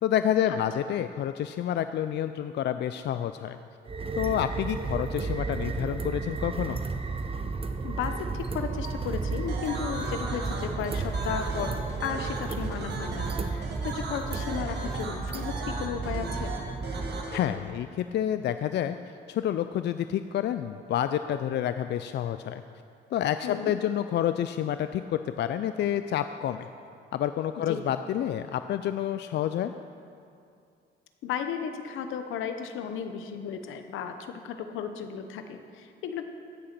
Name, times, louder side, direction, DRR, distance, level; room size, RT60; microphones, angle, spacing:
voice 1, 0.0-3.6 4.2-6.8 17.3-19.0 19.3-22.6 23.1-26.7 27.1-29.7, left 10 dB, 60° left, 10 dB, 0.4 m, -29 dB
sound 1, 3.9-17.2, right 4 dB, 30° right, 0.8 m, -33 dB
voice 2, 7.8-16.5 23.4-23.7 27.7-27.8 31.2-36.2, left 7 dB, 85° left, 7 dB, 0.9 m, -34 dB
sound 2, 9.5-17.4, right 3 dB, 55° right, 2.0 m, -37 dB
15.5 x 6.6 x 6.0 m, 2.4 s
cardioid pair, 90°, 20 cm